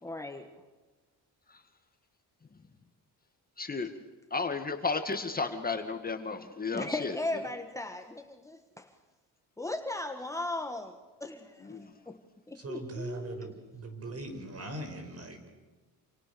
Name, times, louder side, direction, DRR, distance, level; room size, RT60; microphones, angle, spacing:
voice 1, 0.0-0.5 6.7-8.9 9.6-12.2 12.5-13.5, left 2 dB, 10° left, 5 dB, 1.5 m, -37 dB
voice 2, 4.3-6.9 11.7-11.8, left 4 dB, 25° left, 6 dB, 2.0 m, -32 dB
voice 3, 12.5-15.4, right 2 dB, 40° right, 6 dB, 6.0 m, -40 dB
28.5 x 28.0 x 7.0 m, 1.3 s
cardioid pair, 145°, 38 cm